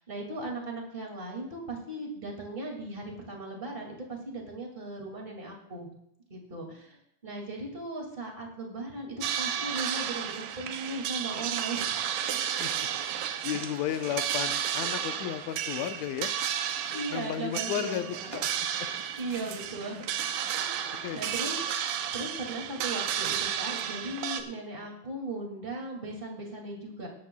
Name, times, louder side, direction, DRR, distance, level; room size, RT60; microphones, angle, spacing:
voice 1, 0.0-5.9 6.3-7.0 7.2-9.1 9.4-12.0 16.9-18.3 19.2-20.0 20.6-27.1, right 2 dB, 20° right, 0 dB, 1.9 m, -38 dB
sound 1, 9.2-24.4, right 9 dB, 85° right, 2.4 m, -32 dB
voice 2, 12.6-16.3 17.1-18.9 20.9-21.2, left 11 dB, 70° left, 9 dB, 1.9 m, -34 dB
19.0 x 12.5 x 2.3 m, 0.77 s
omnidirectional pair, 3.6 m